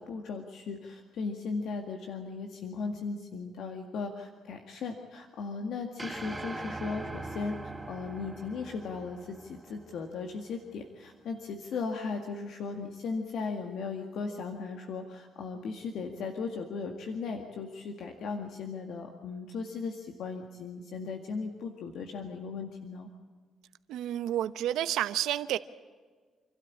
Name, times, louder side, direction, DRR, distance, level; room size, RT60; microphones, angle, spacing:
voice 1, 0.0-7.6 7.8-23.1, left 4 dB, 75° left, 4 dB, 2.0 m, -37 dB
sound 1, 6.0-10.4, right 2 dB, 15° right, 1.4 m, -42 dB
voice 2, 23.9-25.6, right 12 dB, 85° right, 13 dB, 0.9 m, -30 dB
27.5 x 13.0 x 8.6 m, 1.5 s
cardioid pair, 90°, 0 cm